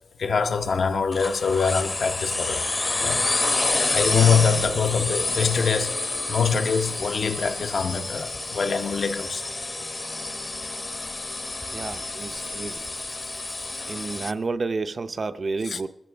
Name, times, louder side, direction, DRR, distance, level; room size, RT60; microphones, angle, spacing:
voice 1, 0.2-2.7 3.0-3.2 3.9-6.0 6.3-9.4 12.4-12.5 15.6-15.8, left 6 dB, 65° left, 0.9 m, -24 dB
sound 1, 1.1-14.3, left 2 dB, 30° left, 0.8 m, -29 dB
voice 2, 11.7-12.8 13.9-15.9, right 3 dB, 45° right, 0.6 m, -30 dB
21.5 x 15.5 x 3.5 m
wide cardioid pair, 155°, 0 cm